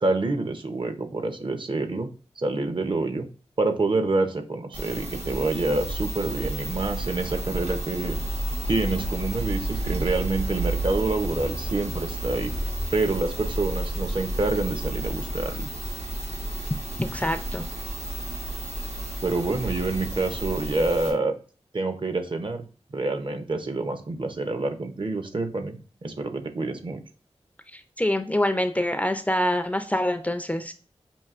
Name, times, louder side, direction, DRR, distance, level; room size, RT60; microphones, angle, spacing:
voice 1, 0.0-2.1 2.4-3.3 3.6-8.2 8.7-12.5 12.9-15.7 19.2-21.3 21.7-22.7 22.9-27.0, right 3 dB, 50° right, 7 dB, 0.6 m, -27 dB
sound 1, 4.7-21.1, right 1 dB, 85° right, 1.2 m, -31 dB
voice 2, 17.0-17.7 27.7-30.7, left 1 dB, 15° left, 7 dB, 0.4 m, -25 dB
5.4 x 2.7 x 2.4 m, 0.37 s
wide cardioid pair, 90°, 11 cm